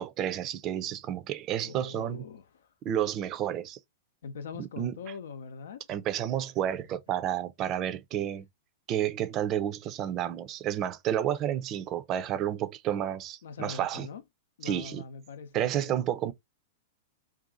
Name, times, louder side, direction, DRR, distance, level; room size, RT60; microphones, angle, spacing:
voice 1, 0.0-2.2 2.8-3.8 4.6-4.9 5.9-8.4 8.9-14.1 14.6-15.0 15.5-16.3, right 10 dB, 35° right, 0.5 m, -31 dB
voice 2, 1.6-2.7 4.2-5.8 13.4-14.2 14.6-16.0, left 5 dB, 65° left, 0.6 m, -42 dB
2.7 x 2.4 x 3.8 m
figure-of-eight pair, 100°, 0 cm